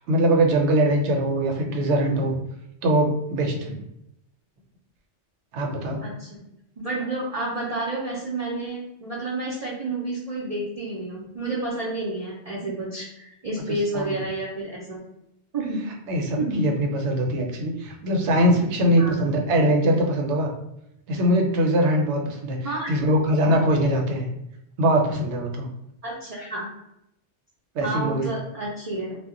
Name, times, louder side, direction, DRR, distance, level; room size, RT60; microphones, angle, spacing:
voice 1, 0.1-2.4 2.8-3.8 5.5-6.1 13.7-14.2 16.1-20.5 21.1-24.3 24.8-25.7 27.7-28.2, right 1 dB, 70° right, 2 dB, 0.9 m, -22 dB
voice 2, 6.0-6.4 6.8-15.0 15.5-15.8 16.4-16.7 19.0-19.2 22.6-22.9 26.0-26.7 27.8-29.2, right 2 dB, 50° right, -4 dB, 0.4 m, -30 dB
2.2 x 2.0 x 3.6 m, 0.82 s
omnidirectional pair, 1.2 m